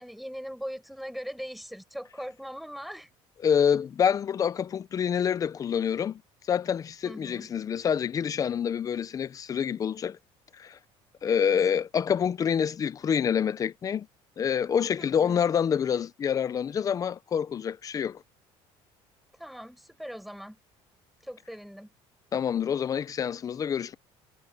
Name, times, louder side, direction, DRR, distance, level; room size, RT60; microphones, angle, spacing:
voice 1, 0.0-3.1 7.0-7.5 11.2-11.5 15.0-15.4 19.3-20.6 21.2-21.9, equal, ahead, 6.0 m, -40 dB
voice 2, 3.4-6.2 6.5-10.2 10.6-10.8 11.2-14.1 14.4-18.2 22.3-24.0, left 8 dB, 30° left, 0.7 m, -27 dB
cardioid pair, 140°, 11 cm